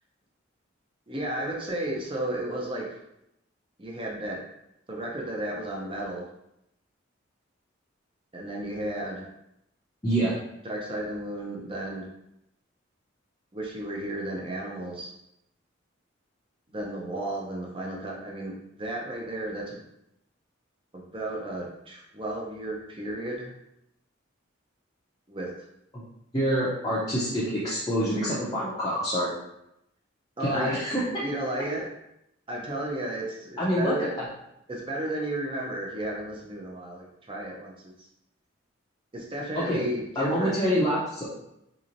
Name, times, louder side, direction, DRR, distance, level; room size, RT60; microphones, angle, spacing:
voice 1, 1.1-2.8 3.8-4.4 4.9-6.2 8.3-9.2 10.6-12.1 13.5-15.1 16.7-19.8 20.9-23.5 25.3-25.5 30.4-30.8 31.2-31.8 32.5-34.1 34.7-37.7 38.0-38.1 39.1-40.6, right 1 dB, 25° right, -2 dB, 0.6 m, -33 dB
voice 2, 10.0-10.4 26.3-29.3 30.4-31.1 33.6-33.9 39.6-39.8 40.2-41.3, equal, 20° left, -8 dB, 0.6 m, -26 dB
3.9 x 3.0 x 2.6 m, 0.82 s
head